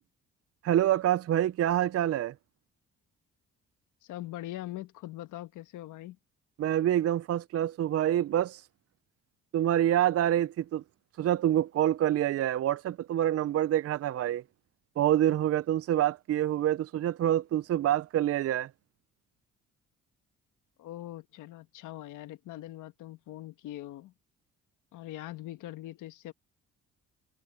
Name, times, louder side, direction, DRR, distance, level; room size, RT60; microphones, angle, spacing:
voice 1, 0.6-2.3 6.6-8.7 9.5-10.8 11.2-14.4 15.0-18.7, right 12 dB, 50° right, 0.5 m, -26 dB
voice 2, 4.0-6.2 20.8-24.1 24.9-26.3, left 15 dB, 90° left, 1.3 m, -42 dB
cardioid pair, 90°, 30 cm